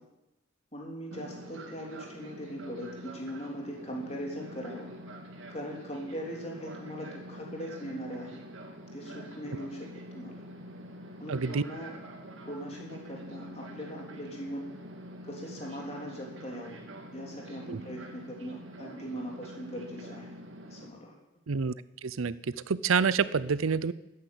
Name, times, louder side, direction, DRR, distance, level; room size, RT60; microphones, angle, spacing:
voice 1, 0.7-4.9 5.5-8.4 8.9-10.4 11.2-12.0 12.4-14.7 15.2-16.8 17.1-20.4 20.7-21.1, equal, 30° left, -1 dB, 3.4 m, -40 dB
Fixed-wing aircraft airplane, 1.1-20.9, equal, 70° right, 2.5 m, -46 dB
voice 2, 11.3-11.6 17.7-17.8 21.5-21.7 22.0-22.3 22.7-23.9, right 5 dB, 90° right, 17 dB, 0.6 m, -27 dB
12.5 x 10.0 x 8.4 m, 0.93 s
head